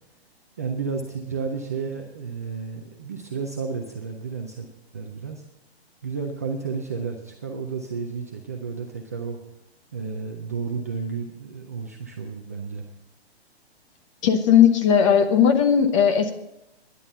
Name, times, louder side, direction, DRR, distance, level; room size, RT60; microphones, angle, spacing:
voice 1, 0.6-4.7 4.9-5.4 6.0-9.4 9.9-12.8, right 5 dB, 15° right, 2 dB, 0.3 m, -32 dB
voice 2, 14.2-16.3, left 8 dB, 30° left, 7 dB, 0.9 m, -17 dB
12.5 x 10.5 x 5.5 m, 0.84 s
hypercardioid pair, 150°, 32 cm